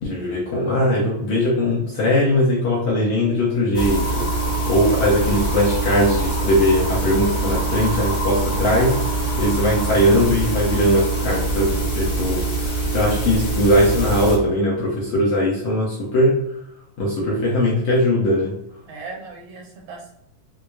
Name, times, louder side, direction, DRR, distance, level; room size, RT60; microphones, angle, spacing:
voice 1, 0.0-4.3 4.7-9.0 9.4-16.4 17.0-18.6, left 1 dB, 70° left, -6 dB, 1.7 m, -20 dB
sound 1, 3.7-14.4, right 2 dB, 45° left, 1.1 m, -23 dB
voice 2, 18.9-20.2, right 3 dB, 80° right, 0 dB, 2.0 m, -38 dB
6.1 x 2.1 x 2.3 m, 0.78 s
omnidirectional pair, 3.8 m